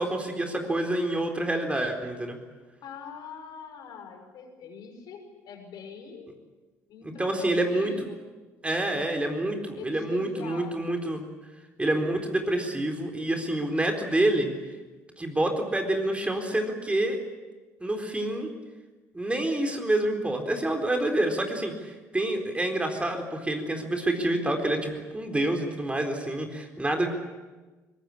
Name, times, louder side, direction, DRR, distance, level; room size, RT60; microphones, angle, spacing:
voice 1, 0.0-2.4 7.0-7.9 8.6-11.2 11.8-14.5 15.2-17.2 17.8-18.5 19.1-27.2, right 1 dB, 15° right, 4 dB, 4.1 m, -27 dB
voice 2, 2.8-6.4 6.9-8.2 9.8-10.8, left 5 dB, 55° left, 4 dB, 5.7 m, -43 dB
23.5 x 21.0 x 8.6 m, 1.3 s
hypercardioid pair, 55°, 8 cm